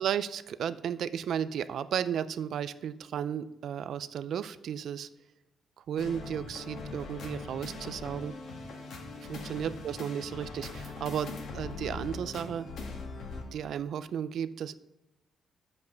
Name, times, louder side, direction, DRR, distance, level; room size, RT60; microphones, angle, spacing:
voice 1, 0.0-5.1 5.8-8.3 9.3-12.7 13.5-14.8, right 9 dB, 65° right, 14 dB, 0.3 m, -34 dB
sound 1, 6.0-13.4, left 3 dB, 65° left, 1.7 m, -41 dB
8.2 x 5.4 x 5.1 m, 0.94 s
cardioid pair, 135°, 0 cm